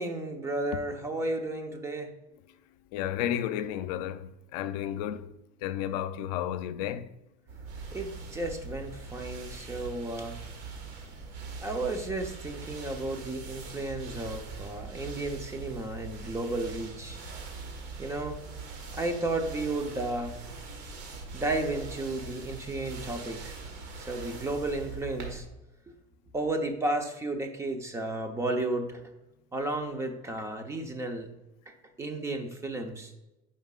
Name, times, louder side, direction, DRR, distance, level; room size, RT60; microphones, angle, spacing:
voice 1, 0.0-2.1 7.9-10.4 11.6-17.2 18.0-18.4 18.9-20.3 21.3-23.6 24.0-25.5 26.3-29.0 29.5-31.3 31.7-33.1, right 2 dB, 15° right, 0.8 m, -33 dB
voice 2, 2.9-5.3 5.6-7.1, left 10 dB, 85° left, 0.6 m, -32 dB
sound 1, 7.5-25.4, right 4 dB, 85° right, 1.8 m, -42 dB
9.3 x 5.3 x 2.4 m
cardioid pair, 145°, 20 cm